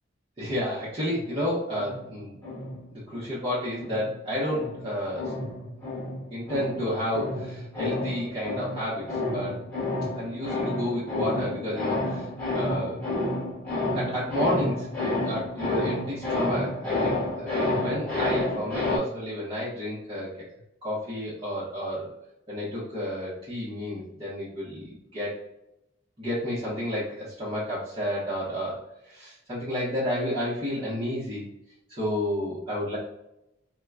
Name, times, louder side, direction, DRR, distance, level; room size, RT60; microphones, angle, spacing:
voice 1, 0.4-2.4 2.9-5.4 6.3-9.6 10.1-13.0 13.9-20.3 20.8-22.1 22.5-25.3 26.2-31.4 31.9-33.0, equal, 30° right, -9 dB, 1.1 m, -31 dB
sound 1, 1.0-3.4 3.8-19.0, left 2 dB, 10° left, 1.3 m, -30 dB
4.7 x 2.3 x 2.4 m, 0.84 s
head